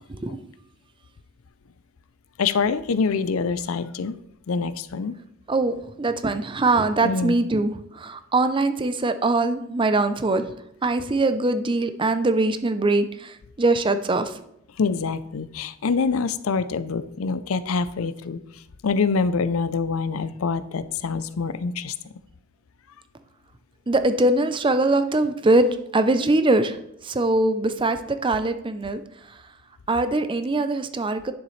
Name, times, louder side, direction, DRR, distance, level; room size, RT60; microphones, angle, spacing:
voice 1, 2.4-4.2 4.5-5.1 7.0-7.4 14.8-21.9, left 5 dB, 85° left, 14 dB, 0.5 m, -25 dB
voice 2, 5.5-10.5 10.8-14.4 23.9-25.7 25.9-29.0 29.9-31.3, right 2 dB, 25° right, 10 dB, 0.5 m, -22 dB
10.5 x 6.7 x 3.2 m, 0.79 s
head